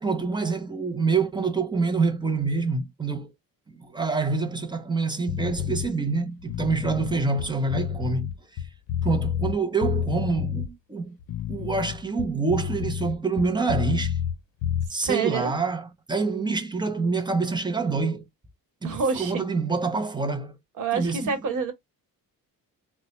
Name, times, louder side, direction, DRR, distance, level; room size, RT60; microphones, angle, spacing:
voice 1, 0.0-3.3 3.7-8.6 9.0-11.1 11.5-14.2 14.9-18.3 18.8-20.6 20.9-21.3, right 4 dB, 15° right, 0.4 m, -26 dB
sound 1, 5.3-5.9 6.4-9.6 9.8-10.7 11.2-14.4 14.6-14.9, left 9 dB, 80° left, 0.7 m, -29 dB
voice 2, 15.0-15.5 18.8-19.5 20.8-21.7, right 5 dB, 60° right, 1.1 m, -27 dB
4.0 x 2.0 x 3.0 m
wide cardioid pair, 180°, 35 cm